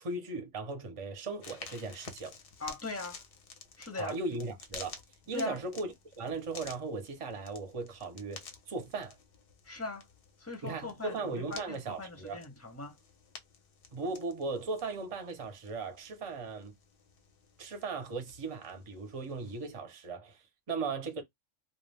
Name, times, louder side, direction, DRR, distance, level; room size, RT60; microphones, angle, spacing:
voice 1, 0.0-2.4 4.0-5.0 5.3-9.2 10.6-12.4 13.9-16.7 17.6-21.2, right 3 dB, 35° right, 0.6 m, -38 dB
sound 1, 1.4-19.7, left 5 dB, 55° left, 0.7 m, -52 dB
voice 2, 2.6-3.2 3.8-4.2 5.3-5.6 9.6-10.1 10.4-13.0, left 3 dB, 15° left, 0.7 m, -40 dB
2.3 x 2.2 x 3.3 m
omnidirectional pair, 1.3 m